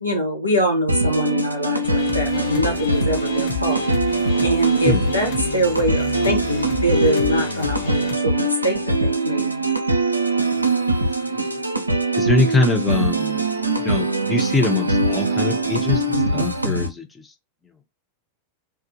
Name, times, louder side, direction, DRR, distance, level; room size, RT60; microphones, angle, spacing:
voice 1, 0.0-3.8 4.1-9.7, equal, 90° left, 1.0 m, -24 dB
sound 1, 0.9-16.9, right 2 dB, 85° right, 0.4 m, -22 dB
sound 2, 1.8-8.2, left 12 dB, 55° left, 0.7 m, -31 dB
voice 2, 10.6-11.4 12.2-13.4 13.8-17.3, left 3 dB, 10° left, 0.7 m, -24 dB
2.3 x 2.1 x 2.8 m
figure-of-eight pair, 90°, 0 cm